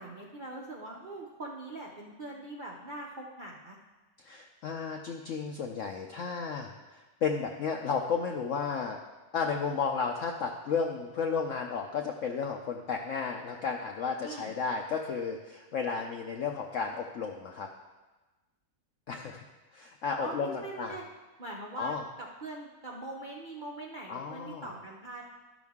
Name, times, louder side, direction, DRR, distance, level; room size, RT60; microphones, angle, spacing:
voice 1, 0.0-3.8 14.2-14.5 20.2-21.0 21.4-25.2, right 2 dB, 60° right, -2 dB, 0.5 m, -42 dB
voice 2, 4.2-9.0 9.3-17.7 19.1-19.4 19.7-21.0 21.8-22.0 24.1-24.7, left 5 dB, 75° left, 3 dB, 0.7 m, -33 dB
12.0 x 6.1 x 3.5 m, 1.2 s
omnidirectional pair, 2.0 m